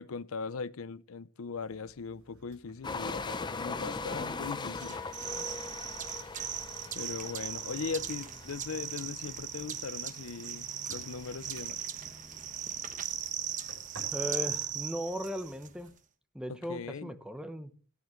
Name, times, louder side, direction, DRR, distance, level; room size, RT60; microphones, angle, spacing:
voice 1, 0.0-5.0 6.9-11.8 16.5-17.1, left 5 dB, 80° left, 0.5 m, -39 dB
sound 1, 1.5-15.9, right 1 dB, 85° right, 5.8 m, -59 dB
sound 2, 2.8-14.8, left 3 dB, 20° left, 0.6 m, -42 dB
sound 3, 4.8-15.7, right 9 dB, 35° right, 1.1 m, -38 dB
voice 2, 14.1-15.9 16.3-17.9, equal, 5° right, 0.8 m, -37 dB
18.0 x 10.0 x 3.1 m
head